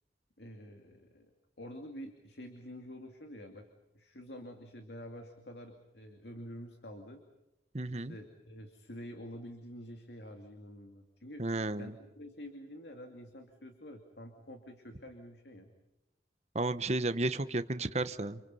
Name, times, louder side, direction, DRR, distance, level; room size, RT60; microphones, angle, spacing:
voice 1, 0.4-1.3 1.6-3.7 3.9-7.2 7.9-11.5 11.8-15.7, equal, 65° left, 4 dB, 2.6 m, -48 dB
voice 2, 7.7-8.1 11.4-11.9 16.5-18.4, right 2 dB, 35° right, 12 dB, 1.1 m, -33 dB
30.0 x 27.5 x 5.5 m, 0.95 s
head